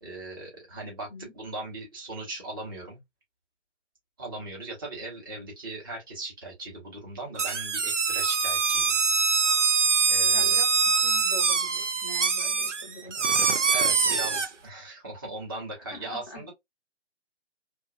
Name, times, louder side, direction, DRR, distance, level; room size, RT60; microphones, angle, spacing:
voice 1, 0.0-3.0 4.2-9.0 10.1-10.6 13.6-16.5, right 2 dB, 20° right, 0.8 m, -39 dB
sound 1, 7.4-14.5, right 5 dB, 85° right, 0.6 m, -24 dB
voice 2, 10.3-13.2 15.9-16.5, left 1 dB, 25° left, 0.7 m, -44 dB
2.8 x 2.3 x 2.2 m
figure-of-eight pair, 145°, 35 cm